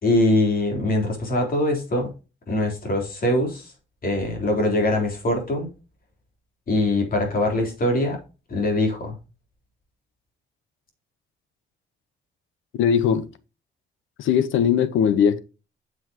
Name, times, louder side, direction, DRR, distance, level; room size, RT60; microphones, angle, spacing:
voice 1, 0.0-2.1 2.5-3.7 4.0-5.7 6.7-8.2 8.5-9.2, left 1 dB, 45° left, 3.8 m, -22 dB
voice 2, 12.7-13.3 14.2-15.4, left 8 dB, 80° left, 1.0 m, -19 dB
8.1 x 7.1 x 2.9 m
cardioid pair, 90°, 20 cm